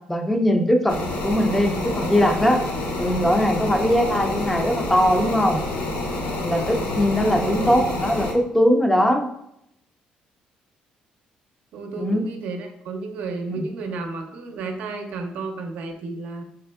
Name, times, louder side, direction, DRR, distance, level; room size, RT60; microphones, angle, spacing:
voice 1, 0.1-1.0 1.2-2.6 3.0-5.6 6.4-9.3 12.0-12.3 13.5-13.6, equal, 5° left, 4 dB, 0.4 m, -20 dB
sound 1, 0.9-8.3, left 2 dB, 70° left, 0.8 m, -28 dB
voice 2, 7.4-7.8 11.7-16.4, right 3 dB, 70° right, 5 dB, 0.6 m, -32 dB
4.1 x 3.4 x 2.3 m, 0.75 s
cardioid pair, 155°, 3 cm